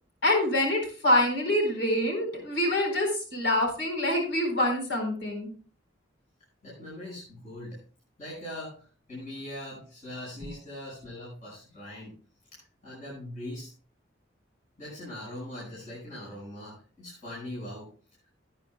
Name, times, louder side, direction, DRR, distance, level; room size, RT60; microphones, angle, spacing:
voice 1, 0.2-5.5, left 1 dB, 70° left, 3 dB, 4.2 m, -26 dB
voice 2, 6.6-7.8 8.2-12.2 12.5-13.7 14.8-17.9, left 1 dB, 45° left, -7 dB, 5.7 m, -41 dB
18.5 x 9.2 x 2.2 m, 0.39 s
head